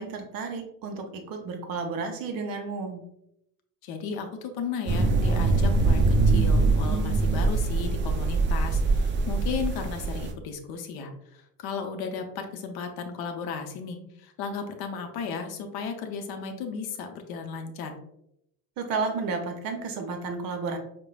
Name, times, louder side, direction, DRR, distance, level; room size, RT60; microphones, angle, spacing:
voice 1, 0.0-3.0 18.8-20.8, right 4 dB, 45° right, 4 dB, 0.8 m, -32 dB
voice 2, 3.8-17.9, left 5 dB, 50° left, 5 dB, 0.7 m, -35 dB
sound 1, 4.9-10.3, right 3 dB, 25° right, 0.4 m, -23 dB
4.7 x 2.2 x 2.2 m, 0.78 s
hypercardioid pair, 65°, 49 cm